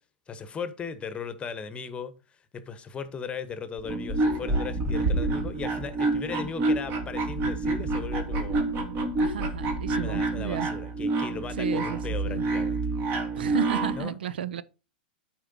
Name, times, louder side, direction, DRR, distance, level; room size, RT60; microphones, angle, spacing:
voice 1, 0.3-2.1 2.5-8.6 10.0-12.8 13.9-14.2, left 6 dB, 20° left, 1.0 m, -37 dB
sound 1, 3.8-14.0, right 2 dB, 40° right, 1.8 m, -28 dB
voice 2, 9.1-10.7 11.6-12.0 12.2-12.5 13.3-14.6, right 9 dB, 80° right, 0.5 m, -33 dB
13.0 x 4.5 x 2.8 m
hypercardioid pair, 110°, 5 cm